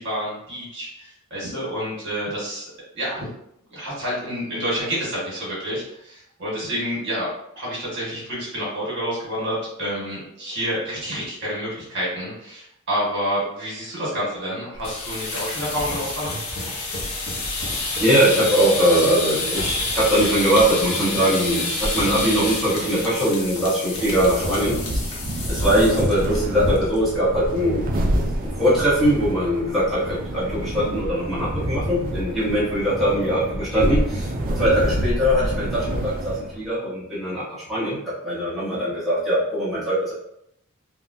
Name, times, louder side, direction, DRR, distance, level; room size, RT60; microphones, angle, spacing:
voice 1, 0.0-3.2 3.7-7.3 7.5-16.3, equal, 55° right, -6 dB, 1.5 m, -28 dB
sound 1, 14.8-26.4 26.7-27.0 27.3-27.4 27.8-28.2, left 2 dB, 75° left, 0.8 m, -28 dB
voice 2, 18.0-25.0 25.5-27.9 28.4-34.3 34.5-40.1, equal, ahead, -12 dB, 1.0 m, -21 dB
sound 2, 23.9-36.7, right 1 dB, 40° right, 0.4 m, -27 dB
3.6 x 2.1 x 2.6 m, 0.77 s
head